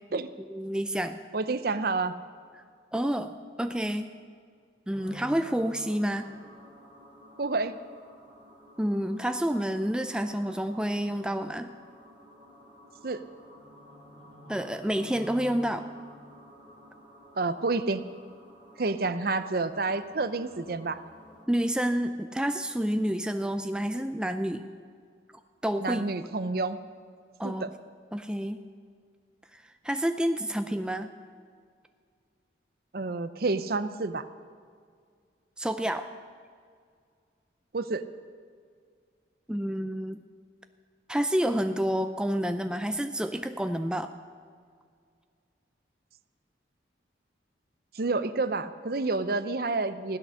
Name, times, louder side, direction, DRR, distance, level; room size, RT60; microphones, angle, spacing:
voice 1, 0.5-1.2 2.9-4.1 4.9-6.3 8.8-11.7 14.5-15.9 21.5-24.6 25.6-26.0 27.4-27.7 28.1-28.6 29.8-31.1 35.6-36.1 39.5-40.2 41.1-44.1, equal, 5° right, 8 dB, 0.4 m, -29 dB
voice 2, 1.3-2.2 7.4-7.7 13.0-13.2 17.4-18.1 18.8-21.0 25.8-26.8 27.4-27.7 32.9-34.2 37.7-38.0 47.9-50.2, right 3 dB, 50° right, 13 dB, 0.6 m, -29 dB
sound 1, 4.9-21.4, equal, 25° right, 3.0 m, -52 dB
15.5 x 12.0 x 6.4 m, 2.1 s
head